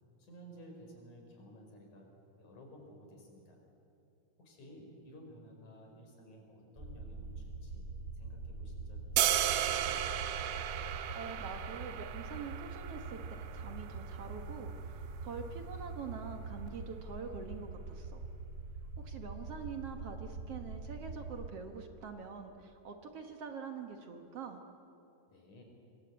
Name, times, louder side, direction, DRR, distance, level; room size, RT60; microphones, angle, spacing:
voice 1, 0.2-2.1 2.4-3.6 4.4-7.8 8.1-9.9 25.3-25.6, equal, 60° left, 2 dB, 5.9 m, -54 dB
sound 1, 6.8-21.5, right 3 dB, 20° right, 2.1 m, -44 dB
sound 2, 9.2-15.3, right 12 dB, 85° right, 2.6 m, -35 dB
voice 2, 11.1-18.2 19.0-24.6, right 6 dB, 55° right, 5 dB, 2.1 m, -45 dB
26.5 x 21.5 x 8.1 m, 2.7 s
omnidirectional pair, 3.8 m